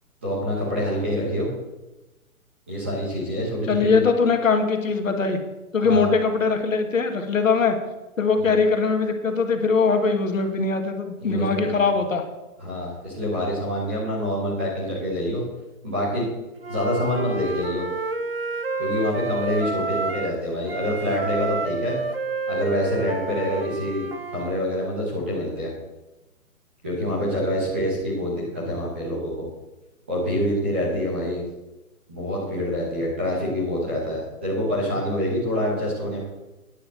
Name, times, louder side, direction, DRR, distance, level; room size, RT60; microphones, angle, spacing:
voice 1, 0.2-1.5 2.7-4.0 5.8-6.1 8.4-8.5 11.2-11.9 12.6-15.4 15.8-16.3 16.7-17.9 18.8-22.0 22.5-24.0 24.3-25.7 26.8-29.4 30.1-31.5 32.1-36.2, equal, 10° right, -7 dB, 1.1 m, -26 dB
voice 2, 3.7-5.4 5.7-7.8 8.2-12.2, left 4 dB, 60° left, 5 dB, 1.8 m, -21 dB
Wind instrument woodwind instrument, 16.6-20.4 20.7-24.5, right 3 dB, 40° right, 0.7 m, -29 dB
9.7 x 7.2 x 7.5 m, 1.0 s
hypercardioid pair, 180°, 44 cm